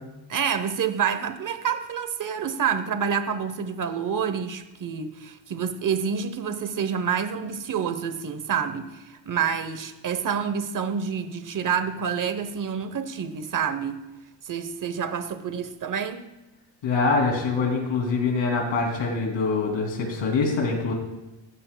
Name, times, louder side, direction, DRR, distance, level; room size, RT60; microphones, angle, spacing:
voice 1, 0.3-14.0 14.4-16.3, right 7 dB, 45° right, 0.9 m, -28 dB
voice 2, 16.8-20.9, left 4 dB, 90° left, 2.8 m, -24 dB
18.0 x 15.0 x 2.2 m
wide cardioid pair, 130°, 45 cm